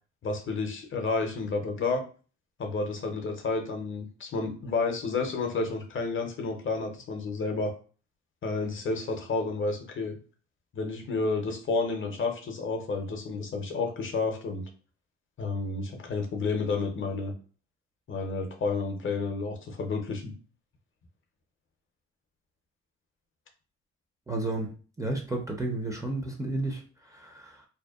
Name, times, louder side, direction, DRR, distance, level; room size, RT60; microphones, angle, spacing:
voice 1, 0.2-2.0 2.6-7.7 8.4-10.2 10.7-14.6 15.4-17.3 18.1-20.3, left 3 dB, 40° left, 4 dB, 0.6 m, -30 dB
voice 2, 24.3-27.6, right 2 dB, 10° right, 1 dB, 0.5 m, -32 dB
2.6 x 2.1 x 2.3 m, 0.38 s
cardioid pair, 90°, 30 cm